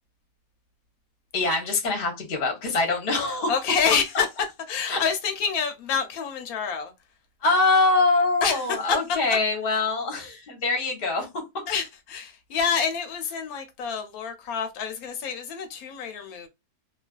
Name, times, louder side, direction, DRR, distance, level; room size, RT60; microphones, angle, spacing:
voice 1, 1.3-3.6 4.9-5.0 7.4-11.6, left 3 dB, 45° left, 0.9 m, -24 dB
voice 2, 3.5-4.3 4.7-6.9 8.4-8.6 8.9-9.0 11.7-16.5, left 6 dB, 80° left, 1.0 m, -27 dB
2.8 x 2.4 x 2.2 m
omnidirectional pair, 1.5 m